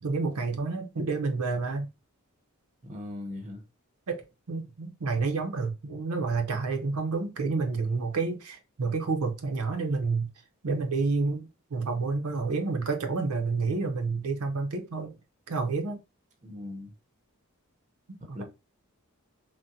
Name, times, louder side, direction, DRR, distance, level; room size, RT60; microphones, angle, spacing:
voice 1, 0.0-1.9 4.1-4.2 4.5-10.3 10.6-15.1 15.5-16.0 18.3-18.4, right 4 dB, 85° right, 0.6 m, -29 dB
voice 2, 2.8-3.6 16.4-16.9 18.2-18.4, left 1 dB, 35° right, 0.7 m, -39 dB
3.6 x 2.1 x 2.6 m
head